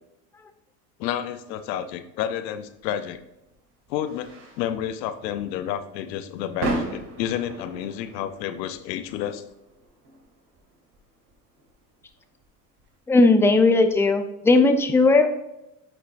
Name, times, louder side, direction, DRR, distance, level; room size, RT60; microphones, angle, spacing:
voice 1, 1.0-3.2 3.9-9.4, left 10 dB, 90° left, 11 dB, 0.7 m, -30 dB
sound 1, 2.7-14.0, right 2 dB, 55° right, 2.4 m, -38 dB
voice 2, 13.1-15.4, left 3 dB, 5° left, 6 dB, 0.5 m, -17 dB
8.4 x 5.5 x 2.6 m, 0.89 s
supercardioid pair, 90°, 49 cm